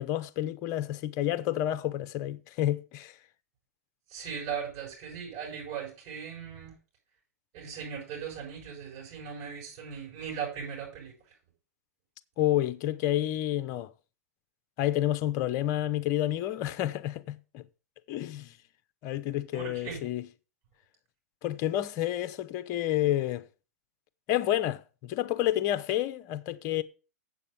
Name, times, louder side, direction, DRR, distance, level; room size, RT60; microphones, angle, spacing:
voice 1, 0.0-3.2 12.4-13.9 14.8-17.7 18.1-18.5 19.0-20.3 21.4-23.4 24.3-26.8, left 13 dB, 40° left, 0.9 m, -29 dB
voice 2, 4.1-6.7 7.5-11.1 19.5-20.0, right 7 dB, 45° right, 6.7 m, -38 dB
8.3 x 7.8 x 5.4 m
figure-of-eight pair, 100°, 9 cm